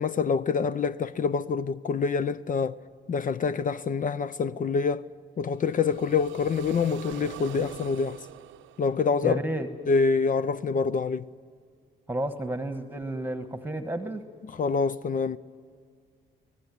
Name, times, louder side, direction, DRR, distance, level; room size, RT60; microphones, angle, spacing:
voice 1, 0.0-2.8 3.1-5.1 5.4-8.2 8.8-9.4 9.9-11.3 14.6-15.4, left 5 dB, 45° left, 0.6 m, -26 dB
sound 1, 5.5-9.6, right 13 dB, 80° right, 0.7 m, -43 dB
voice 2, 9.2-9.7 12.1-14.2, right 1 dB, 10° right, 1.4 m, -31 dB
24.0 x 18.5 x 9.7 m
cardioid pair, 75°, 20 cm